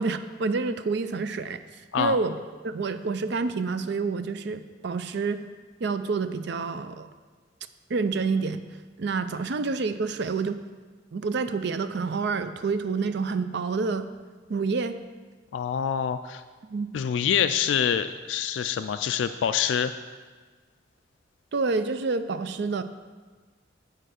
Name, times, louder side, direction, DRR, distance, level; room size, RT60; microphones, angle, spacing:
voice 1, 0.0-1.6 2.0-2.4 2.6-5.5 5.8-7.1 7.9-8.6 9.0-10.6 11.1-14.1 14.5-15.0 16.7-16.9 21.5-22.8, right 4 dB, 65° right, 11 dB, 0.5 m, -28 dB
voice 2, 15.5-16.4 16.9-19.9, left 8 dB, 75° left, 10 dB, 0.3 m, -26 dB
10.0 x 4.4 x 6.5 m, 1.4 s
head